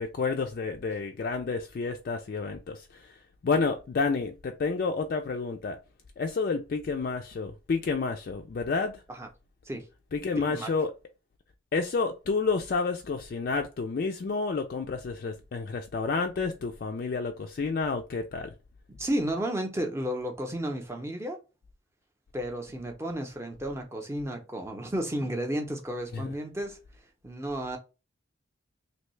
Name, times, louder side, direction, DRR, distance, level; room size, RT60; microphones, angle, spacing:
voice 1, 0.0-3.2 3.4-5.8 6.2-8.9 10.1-10.9 11.7-18.5 26.1-26.3, left 4 dB, 50° left, 0.3 m, -30 dB
voice 2, 19.0-21.4 22.3-26.8 27.2-27.8, right 1 dB, 15° right, 0.6 m, -32 dB
3.2 x 2.6 x 3.1 m
head